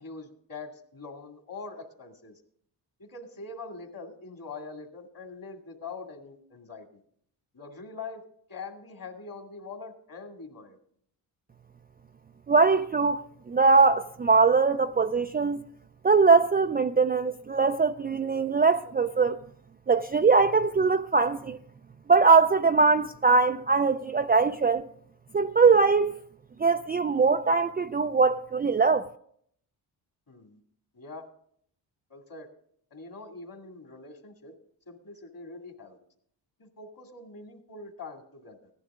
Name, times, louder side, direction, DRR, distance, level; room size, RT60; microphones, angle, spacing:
voice 1, 0.0-2.4 3.0-7.0 7.5-8.2 8.5-10.8 30.3-30.6 30.9-31.3 32.1-32.5 32.9-34.5 34.9-36.0 36.6-38.7, left 4 dB, 45° left, 2.4 m, -43 dB
voice 2, 12.5-15.6 16.0-19.4 19.9-21.6 22.1-24.9 25.3-26.1 26.6-29.1, right 4 dB, 20° right, 0.4 m, -22 dB
15.5 x 10.5 x 3.7 m
supercardioid pair, 55°, 46 cm